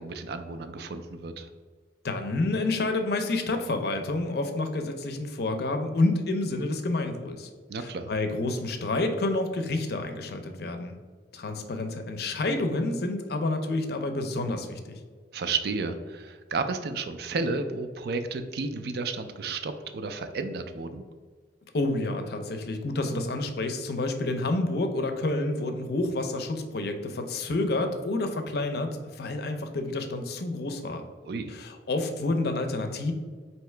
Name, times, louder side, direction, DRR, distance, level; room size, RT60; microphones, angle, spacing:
voice 1, 0.0-1.5 7.7-8.1 15.3-21.0 31.2-31.5, right 4 dB, 60° right, 8 dB, 0.4 m, -32 dB
voice 2, 2.0-7.5 7.8-11.0 11.3-15.0 21.7-31.0 31.5-33.1, left 2 dB, 60° left, 6 dB, 0.5 m, -29 dB
4.6 x 2.9 x 3.2 m, 1.5 s
head